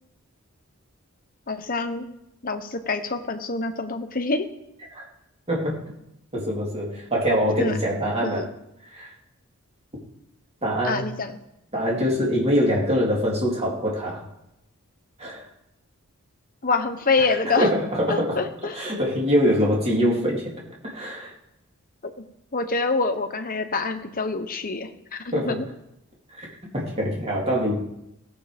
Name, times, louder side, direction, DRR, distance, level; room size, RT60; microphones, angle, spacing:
voice 1, 1.5-2.0 2.4-4.5 7.6-7.7 8.2-8.5 10.8-11.3 16.6-17.7 18.1-18.8 22.5-25.6, left 3 dB, 40° left, 7 dB, 1.0 m, -26 dB
voice 2, 6.3-8.5 8.9-9.1 10.6-11.0 11.7-14.2 15.2-15.5 17.4-18.4 18.7-20.5 20.8-21.3 25.3-25.6 26.3-26.5 26.7-27.7, equal, 25° right, -3 dB, 2.9 m, -24 dB
17.0 x 7.1 x 5.1 m, 0.84 s
head